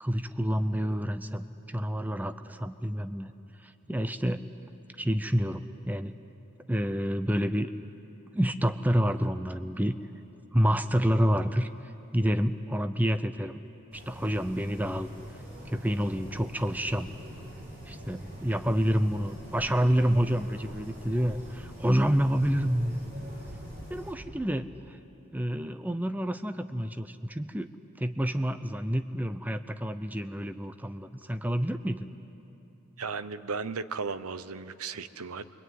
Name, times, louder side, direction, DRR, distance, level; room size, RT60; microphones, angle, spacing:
voice 1, 0.0-3.3 3.6-4.4 5.0-6.1 6.7-7.7 8.3-9.9 10.5-11.7 12.1-13.6 13.9-15.1 15.7-17.1 17.9-23.0 23.9-25.0 25.3-27.7 28.0-32.1, equal, 5° right, 10 dB, 0.6 m, -28 dB
sound 1, 13.9-24.1, equal, 45° right, 5.5 m, -43 dB
voice 2, 33.0-35.4, right 4 dB, 85° right, 13 dB, 0.9 m, -35 dB
26.0 x 23.5 x 9.4 m, 2.9 s
head